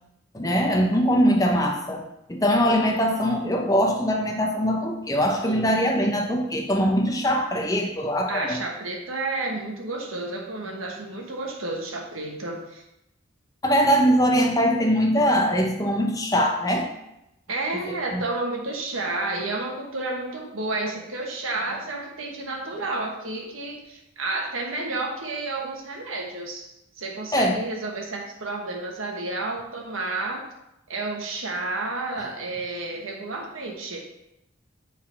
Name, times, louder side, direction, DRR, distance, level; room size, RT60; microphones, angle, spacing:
voice 1, 0.3-8.6 13.6-16.9 18.1-18.2 27.3-27.6, equal, 15° left, 2 dB, 0.7 m, -22 dB
voice 2, 8.3-12.8 17.5-30.4 30.9-34.1, right 2 dB, 85° right, 1 dB, 1.3 m, -31 dB
8.2 x 3.9 x 4.4 m, 0.85 s
head